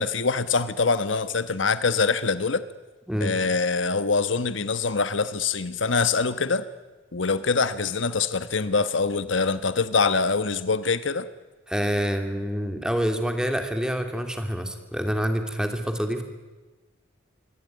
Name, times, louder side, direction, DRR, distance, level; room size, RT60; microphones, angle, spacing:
voice 1, 0.0-2.6 3.2-6.6 7.1-11.3, left 4 dB, 75° left, 13 dB, 1.2 m, -24 dB
voice 2, 11.7-16.2, equal, 5° right, 6 dB, 2.9 m, -27 dB
27.0 x 23.0 x 9.6 m, 1.3 s
head